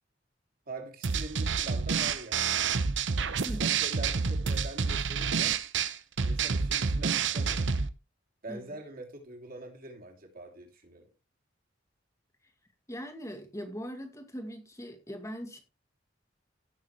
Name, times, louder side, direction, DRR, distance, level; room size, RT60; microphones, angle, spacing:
voice 1, 0.7-2.6 3.5-5.6 6.2-7.7 8.4-11.1, right 2 dB, 50° right, 3.1 m, -44 dB
sound 1, 1.0-7.9, right 5 dB, 80° right, 0.8 m, -28 dB
voice 2, 3.4-3.8 8.5-8.8 12.9-15.6, equal, 15° left, 2.0 m, -41 dB
16.5 x 6.5 x 3.2 m
head